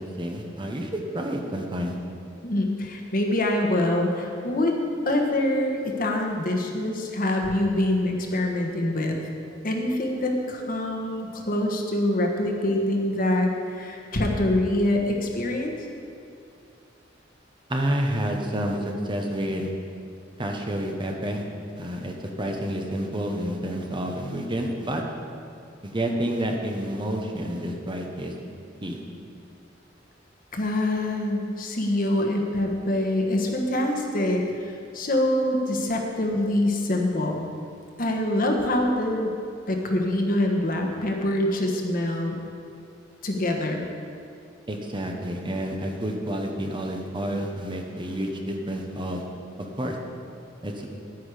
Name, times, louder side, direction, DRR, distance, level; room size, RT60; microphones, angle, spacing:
voice 1, 0.0-1.9 17.7-19.7 20.4-21.4 21.8-25.0 25.8-28.3 28.8-29.0 44.7-49.2 49.6-50.0 50.6-50.9, right 1 dB, 25° right, 2 dB, 1.0 m, -29 dB
voice 2, 2.4-4.7 5.0-9.2 9.6-15.8 30.5-37.5 38.0-39.3 39.7-42.4 43.2-43.8, left 1 dB, 50° left, 2 dB, 1.3 m, -25 dB
10.0 x 9.5 x 5.0 m, 2.5 s
head